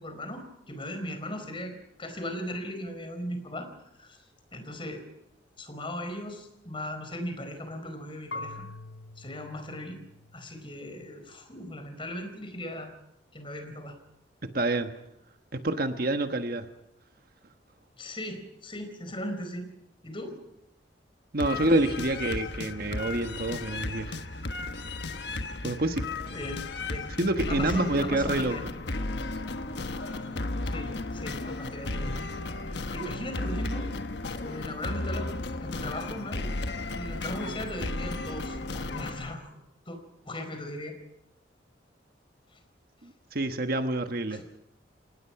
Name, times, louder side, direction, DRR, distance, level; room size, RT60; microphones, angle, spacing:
voice 1, 0.0-1.7 2.0-3.7 4.0-4.2 4.5-5.0 5.6-8.6 9.2-10.0 10.3-12.9 13.3-14.0 18.0-19.7 20.0-20.4 26.3-27.1 27.5-28.6 30.6-32.2 32.6-33.9 34.4-36.5 36.9-39.5 39.9-40.0 40.3-41.0 44.3-44.4, left 1 dB, 30° left, 6 dB, 4.5 m, -38 dB
Marimba xylophone / Wood, 8.3-11.2, left 2 dB, 85° left, 1.0 m, -44 dB
voice 2, 14.4-14.9 15.5-16.7 21.3-24.2 25.6-26.0 27.2-28.6 43.0-44.4, right 2 dB, 55° right, 8 dB, 1.3 m, -27 dB
sound 1, 21.4-39.3, left 2 dB, 65° left, 1.2 m, -34 dB
27.5 x 18.5 x 5.9 m, 0.83 s
head